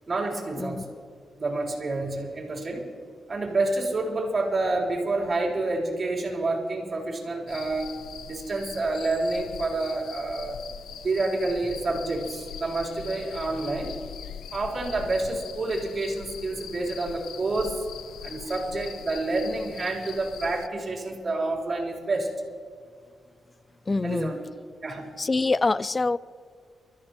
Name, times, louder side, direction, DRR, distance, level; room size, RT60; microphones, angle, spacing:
voice 1, 0.1-1.0 1.4-2.8 3.3-8.0 8.2-10.6 11.0-13.9 14.5-17.8 18.2-22.3 24.0-24.4 24.8-25.1, right 2 dB, 40° right, -3 dB, 3.7 m, -28 dB
sound 1, 7.5-20.7, left 9 dB, 85° left, 0.5 m, -42 dB
voice 2, 23.9-24.4 25.2-26.2, left 3 dB, 25° left, 19 dB, 0.3 m, -25 dB
24.5 x 14.0 x 3.0 m, 2.1 s
cardioid pair, 95°, 0 cm